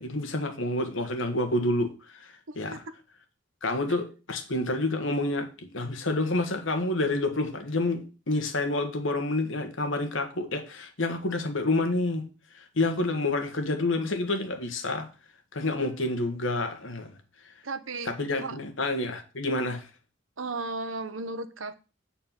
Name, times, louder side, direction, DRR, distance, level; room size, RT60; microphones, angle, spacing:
voice 1, 0.0-2.8 3.6-12.2 12.5-15.1 15.5-17.1 17.4-17.5 18.1-19.9, left 2 dB, 70° left, 1.6 m, -28 dB
voice 2, 2.5-2.8 15.8-16.4 17.6-18.1 18.4-18.6 20.4-21.7, right 3 dB, 80° right, 1.1 m, -35 dB
8.9 x 4.4 x 7.4 m
head